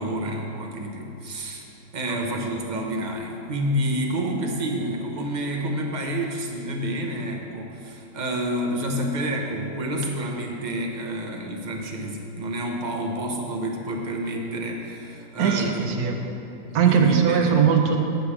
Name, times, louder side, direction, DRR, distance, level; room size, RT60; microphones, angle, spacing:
voice 1, 0.0-1.6 1.9-15.8 16.7-17.6, right 1 dB, 40° right, 1 dB, 0.7 m, -29 dB
voice 2, 15.4-16.2 16.7-18.0, right 7 dB, 75° right, 3 dB, 1.3 m, -20 dB
7.7 x 4.8 x 7.2 m, 2.8 s
omnidirectional pair, 1.7 m